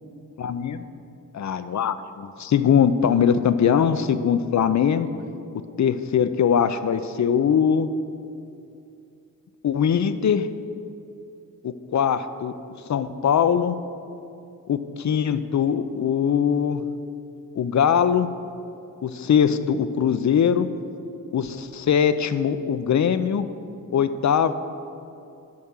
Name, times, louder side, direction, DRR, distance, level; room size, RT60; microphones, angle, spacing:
voice 1, 0.4-0.9 1.3-5.1 5.8-7.9 9.6-10.5 11.6-12.5 12.9-13.8 14.7-16.8 17.5-18.3 19.0-20.7 21.3-23.5 23.9-24.5, left 8 dB, 50° left, 12 dB, 0.6 m, -21 dB
9.6 x 5.4 x 6.2 m, 2.7 s
supercardioid pair, 45°, 36 cm